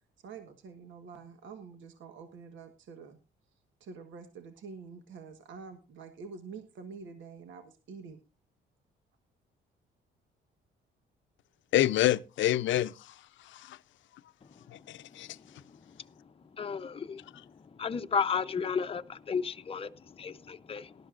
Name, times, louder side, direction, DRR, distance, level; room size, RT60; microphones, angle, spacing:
voice 1, 0.2-3.2 3.8-8.2, right 5 dB, 75° right, 1.4 m, -47 dB
voice 2, 11.7-13.1 13.5-13.8 14.9-15.3, left 13 dB, 75° left, 0.6 m, -27 dB
voice 3, 16.6-17.3 17.8-19.9 20.2-20.9, left 6 dB, 30° left, 0.7 m, -33 dB
18.5 x 12.0 x 2.5 m
cardioid pair, 90°, 20 cm